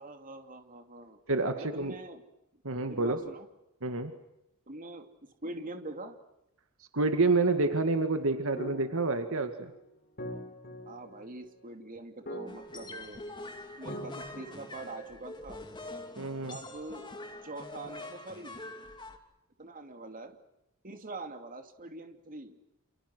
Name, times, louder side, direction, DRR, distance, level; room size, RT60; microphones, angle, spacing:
voice 1, 0.0-1.2 1.5-2.2 2.5-2.6 2.9-3.5 4.7-5.1 5.4-6.1 10.9-13.2 13.8-15.6 16.5-17.0 17.4-18.6 19.6-20.4 20.8-22.6, right 2 dB, 40° right, 5 dB, 2.8 m, -44 dB
voice 2, 1.3-1.9 2.6-3.2 3.8-4.1 6.9-9.7 16.2-16.6, right 3 dB, 65° right, 7 dB, 2.1 m, -28 dB
sound 1, 8.6-15.3, equal, 45° left, 6.5 m, -44 dB
sound 2, 12.5-19.2, left 2 dB, 20° left, 2.8 m, -45 dB
29.5 x 28.5 x 6.3 m, 0.86 s
head